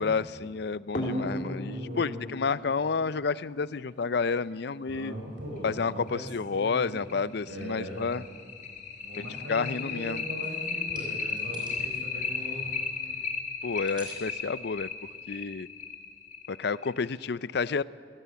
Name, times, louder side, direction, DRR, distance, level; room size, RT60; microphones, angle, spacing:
voice 1, 0.0-5.1 5.6-8.2 9.2-10.2 13.6-14.9 15.3-15.7 16.5-17.8, left 5 dB, 60° left, 18 dB, 0.5 m, -30 dB
sound 1, 0.9-4.1 5.6-5.7 6.1-6.2 6.6-6.7 7.1-17.1, left 4 dB, 45° left, 2.9 m, -35 dB
voice 2, 1.6-2.3 4.9-7.1 7.4-8.0 9.0-12.7, right 1 dB, 85° right, 1 dB, 6.5 m, -40 dB
sound 2, 10.4-10.6 10.9-11.8 12.2-13.1 13.6-14.4 15.0-15.2 15.6-15.7, right 2 dB, 25° right, 5.1 m, -50 dB
26.5 x 17.0 x 8.3 m, 2.3 s
head